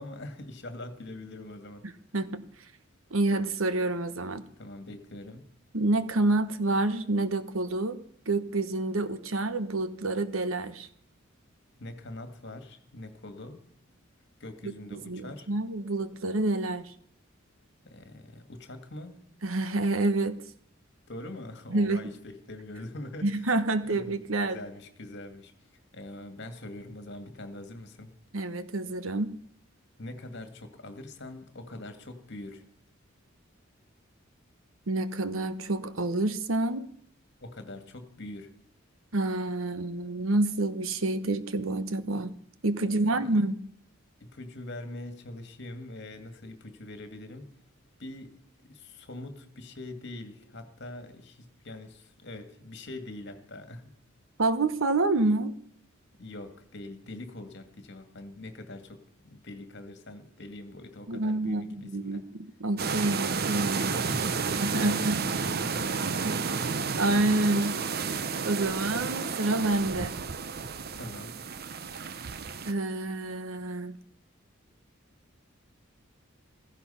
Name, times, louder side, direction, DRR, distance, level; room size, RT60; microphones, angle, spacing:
voice 1, 0.0-1.9 4.6-5.5 11.8-13.6 14.4-15.5 17.8-19.2 21.1-23.5 23.8-24.2 24.5-25.5 25.9-28.1 30.0-32.6 37.4-38.5 43.0-43.4 44.2-47.5 48.0-48.4 48.7-53.9 56.2-62.2 63.8-65.1 65.6-66.7 71.0-71.4, left 1 dB, 55° left, 8 dB, 2.1 m, -43 dB
voice 2, 2.1-2.4 3.1-4.4 5.7-8.0 8.3-10.9 14.6-16.9 19.4-20.4 21.7-22.0 23.2-24.6 28.3-29.3 34.9-36.9 39.1-42.4 42.6-43.5 54.4-55.5 61.1-63.9 64.5-65.2 66.2-66.4 67.0-67.8 68.5-70.1 72.6-74.0, right 2 dB, 80° right, 12 dB, 1.1 m, -28 dB
sound 1, 62.8-72.7, right 5 dB, 50° right, 0.7 m, -31 dB
15.5 x 15.0 x 5.7 m, 0.62 s
head